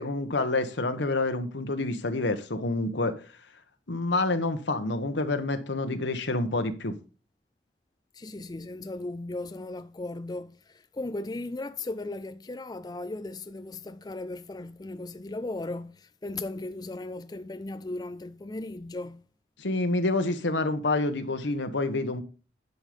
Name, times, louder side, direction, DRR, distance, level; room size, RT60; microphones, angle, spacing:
voice 1, 0.0-3.1 3.9-6.9 19.6-22.2, left 2 dB, 75° left, 1.2 m, -28 dB
voice 2, 8.1-19.2, left 2 dB, 20° left, 0.4 m, -37 dB
11.0 x 5.5 x 5.1 m
head